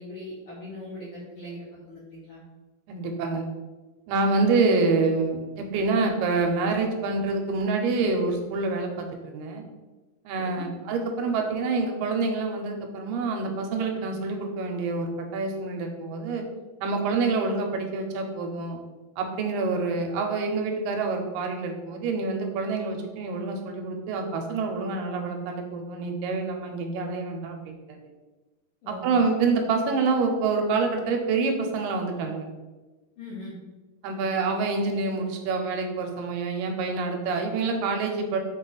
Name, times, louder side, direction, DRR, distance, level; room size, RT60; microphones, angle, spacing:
voice 1, 0.0-2.4 10.4-10.7 28.8-29.3 33.2-33.5, left 1 dB, 75° left, -9 dB, 1.3 m, -40 dB
voice 2, 2.9-3.5 4.1-9.6 10.3-16.4 16.8-18.8 19.2-28.0 28.9-32.5 34.0-38.4, right 4 dB, 85° right, 4 dB, 2.3 m, -27 dB
5.8 x 2.4 x 3.8 m, 1.2 s
omnidirectional pair, 3.8 m